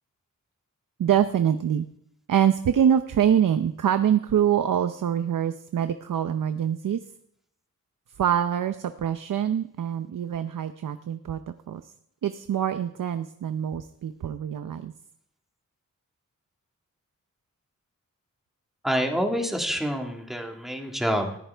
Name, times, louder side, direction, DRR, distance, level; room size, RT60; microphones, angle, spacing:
voice 1, 1.0-1.9 2.3-7.0 8.2-11.4 11.7-11.8 12.2-14.9, right 9 dB, 85° right, 10 dB, 0.7 m, -24 dB
voice 2, 18.8-21.4, equal, ahead, 2 dB, 1.8 m, -27 dB
19.5 x 14.5 x 3.4 m, 0.73 s
wide cardioid pair, 170°, 31 cm